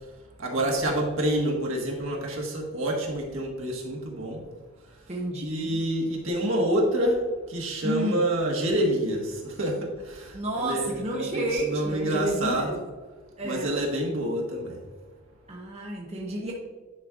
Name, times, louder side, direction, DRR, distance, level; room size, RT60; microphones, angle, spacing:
voice 1, 0.4-4.4 5.4-12.8 13.4-14.8, right 1 dB, 65° right, -1 dB, 1.5 m, -27 dB
voice 2, 5.1-5.8 7.8-8.3 10.3-12.8 13.4-13.7 15.5-16.5, right 1 dB, 30° right, -2 dB, 0.8 m, -31 dB
10.0 x 5.3 x 2.5 m, 1.4 s
head